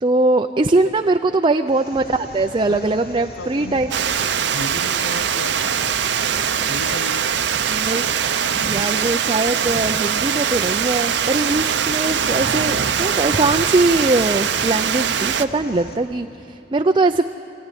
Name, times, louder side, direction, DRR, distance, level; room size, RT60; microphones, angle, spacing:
voice 1, 0.0-3.9 7.7-8.1 8.5-17.3, right 2 dB, 25° right, 6 dB, 0.5 m, -21 dB
sound 1, 1.5-1.7 2.5-3.1 3.5-3.6 4.5-4.7 5.5-5.7 6.5-6.7 7.5-7.7 8.5-8.7, left 1 dB, 35° left, 7.4 m, -54 dB
sound 2, 1.7-16.0, left 1 dB, 55° left, 2.7 m, -38 dB
voice 2, 3.4-3.9 4.2-5.7 6.6-7.3, left 3 dB, 85° left, 11 dB, 0.7 m, -35 dB
Water, 3.9-15.5, right 8 dB, 70° right, 0.7 m, -22 dB
26.5 x 15.5 x 10.0 m, 2.8 s
head